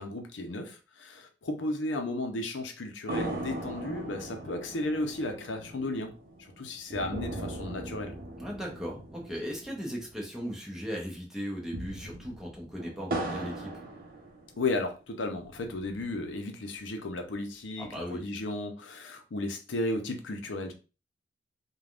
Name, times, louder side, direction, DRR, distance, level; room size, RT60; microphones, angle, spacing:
voice 1, 0.0-6.1 6.6-8.2 14.6-20.7, left 2 dB, 85° left, 0.6 m, -34 dB
sound 1, 3.1-10.7 10.9-11.0 11.5-14.8 15.4-16.4, right 1 dB, 50° right, 0.6 m, -39 dB
voice 2, 8.4-13.7 17.8-18.2, equal, 5° right, 0.7 m, -37 dB
3.4 x 2.3 x 2.4 m
head